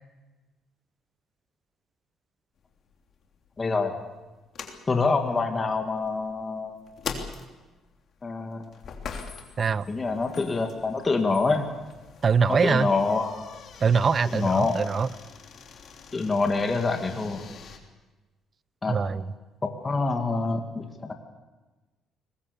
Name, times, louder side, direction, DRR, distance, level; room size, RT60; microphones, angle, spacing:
sound 1, 2.6-17.8, left 6 dB, 50° left, 3.2 m, -43 dB
voice 1, 3.6-3.9 4.9-6.8 8.2-8.6 9.9-11.7 12.5-13.3 14.3-14.8 16.1-17.4 18.8-19.0 19.6-21.1, left 3 dB, 25° left, 4 dB, 2.4 m, -26 dB
voice 2, 12.2-12.9 13.8-15.1 18.9-19.3, right 5 dB, 35° right, 17 dB, 0.8 m, -23 dB
23.0 x 21.0 x 7.1 m, 1.2 s
cardioid pair, 120°, 0 cm